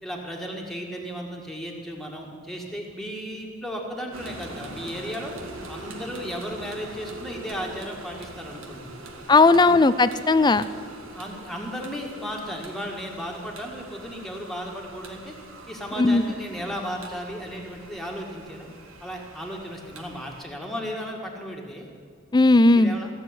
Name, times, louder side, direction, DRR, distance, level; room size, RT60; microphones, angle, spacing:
voice 1, 0.0-5.3 5.7-9.0 9.5-9.8 11.1-15.3 15.7-18.7 19.0-21.9 22.8-23.1, equal, ahead, 0 dB, 2.0 m, -35 dB
sound 1, 4.1-20.4, right 2 dB, 85° right, 1.9 m, -43 dB
voice 2, 9.3-10.6 16.0-16.2 22.3-22.9, left 3 dB, 20° left, 15 dB, 0.5 m, -17 dB
15.5 x 7.5 x 9.8 m, 2.1 s
head